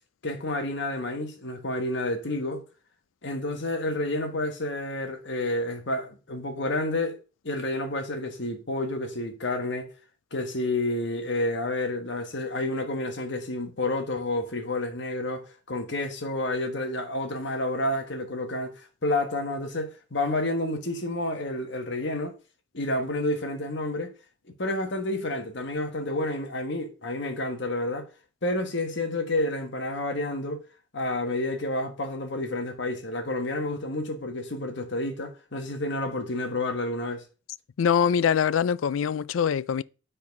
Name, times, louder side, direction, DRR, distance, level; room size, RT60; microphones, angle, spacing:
voice 1, 0.2-2.6 3.2-7.2 7.4-9.9 10.3-22.3 22.7-24.1 24.6-28.1 28.4-30.6 30.9-37.2, left 1 dB, 60° left, 1.5 m, -30 dB
voice 2, 37.8-39.8, left 7 dB, 80° left, 0.4 m, -23 dB
9.7 x 4.2 x 5.2 m
head